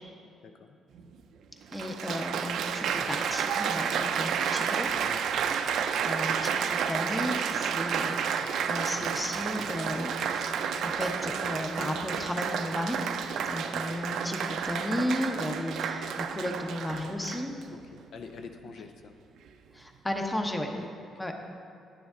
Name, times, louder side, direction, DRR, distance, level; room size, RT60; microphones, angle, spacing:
voice 1, 0.4-0.8 13.5-13.9 17.7-19.1 20.7-21.1, left 5 dB, 70° left, 6 dB, 0.5 m, -47 dB
Applause, 1.0-1.1 1.7-17.6 18.4-18.7, right 7 dB, 75° right, 0.4 m, -31 dB
voice 2, 1.7-4.9 6.0-10.5 10.8-13.0 13.4-17.5 19.7-20.7 21.2-21.3, left 1 dB, 10° left, 3 dB, 0.9 m, -34 dB
10.5 x 6.8 x 3.8 m, 2.4 s
cardioid pair, 90°, 0 cm